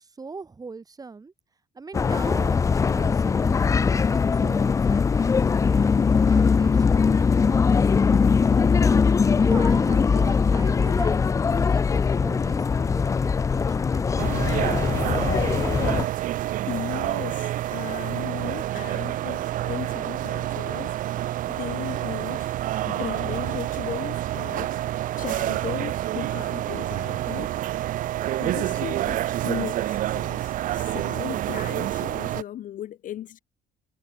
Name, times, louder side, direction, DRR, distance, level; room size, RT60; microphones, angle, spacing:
voice 1, 0.0-1.3 1.7-7.6 8.8-9.0 9.4-11.1 11.5-14.7, right 4 dB, 20° right, 1.5 m, -41 dB
sound 1, 1.9-16.0, left 5 dB, 20° left, 0.3 m, -21 dB
sound 2, 14.2-32.4, right 13 dB, 55° right, 0.4 m, -28 dB
voice 2, 16.7-22.5 22.8-27.5 28.3-33.4, left 12 dB, 50° left, 0.6 m, -37 dB
cardioid pair, 110°, 17 cm